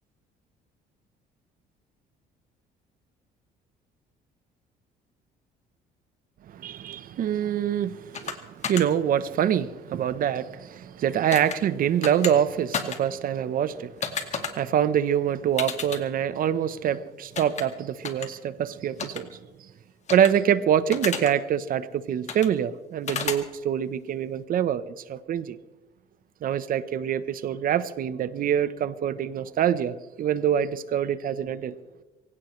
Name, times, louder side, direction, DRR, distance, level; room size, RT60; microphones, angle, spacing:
voice 1, 6.5-19.4 20.1-25.6 26.4-31.8, right 9 dB, 55° right, 1.0 m, -25 dB
sound 1, 8.1-8.3 8.6-8.8 11.3-11.6 12.0-12.3 12.7-13.0 14.0-14.5 15.6-16.0 17.3-17.6 18.0-18.3 19.0-19.2 20.1-20.3 20.9-21.3 22.3-22.5 23.1-23.4, left 6 dB, 45° left, 2.2 m, -31 dB
24.0 x 17.0 x 3.3 m
cardioid pair, 110°, 17 cm